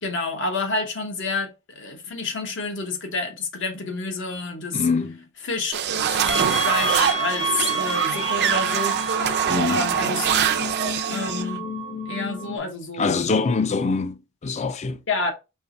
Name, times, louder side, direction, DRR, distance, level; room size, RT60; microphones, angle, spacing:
voice 1, 0.0-4.9 5.4-9.0 9.7-10.3 10.5-10.7 11.1-11.6 12.1-13.2 15.1-15.3, left 3 dB, 65° left, 0.9 m, -29 dB
voice 2, 4.7-5.3 9.5-9.9 13.0-15.0, left 4 dB, 35° left, 0.4 m, -24 dB
sound 1, 5.7-11.5, right 8 dB, 55° right, 0.5 m, -24 dB
sound 2, 6.2-12.6, right 3 dB, 90° left, 1.0 m, -28 dB
4.6 x 2.9 x 2.6 m
head